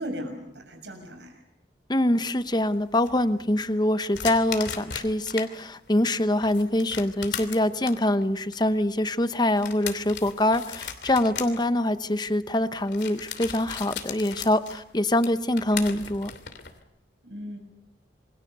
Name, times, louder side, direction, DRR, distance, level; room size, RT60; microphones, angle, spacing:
voice 1, 0.0-1.4 17.2-17.6, equal, 80° right, 5 dB, 7.0 m, -37 dB
voice 2, 1.9-16.3, left 1 dB, 25° left, 12 dB, 0.9 m, -24 dB
sound 1, 2.2-5.5 5.9-16.8, left 7 dB, 70° left, 2.9 m, -38 dB
28.0 x 22.5 x 6.9 m, 0.82 s
head